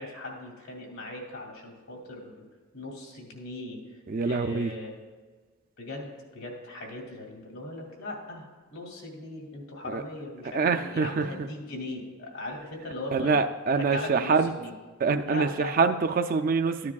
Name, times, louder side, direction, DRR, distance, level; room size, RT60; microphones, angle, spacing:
voice 1, 0.0-2.4 2.7-3.8 4.2-4.9 5.8-13.4 13.7-14.7 15.2-15.8, left 2 dB, 75° left, -1 dB, 2.5 m, -39 dB
voice 2, 4.1-4.7 9.8-10.0 10.5-11.3 13.1-14.5 15.0-16.9, right 4 dB, 40° right, 8 dB, 0.3 m, -25 dB
14.0 x 9.6 x 2.3 m, 1.4 s
head